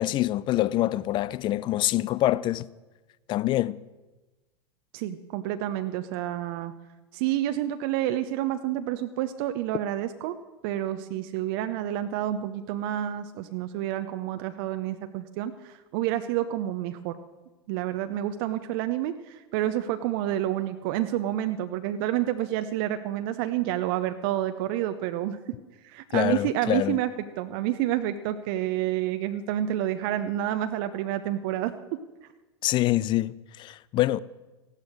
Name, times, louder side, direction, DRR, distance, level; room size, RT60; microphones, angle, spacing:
voice 1, 0.0-2.7 3.3-3.8 26.1-27.0 32.6-34.2, left 15 dB, 35° left, 0.5 m, -25 dB
voice 2, 4.9-6.7 7.1-10.3 10.6-17.2 17.7-25.5 25.8-27.1 27.4-32.0, right 12 dB, 50° right, 0.7 m, -29 dB
15.0 x 11.5 x 6.5 m
figure-of-eight pair, 90°, 14 cm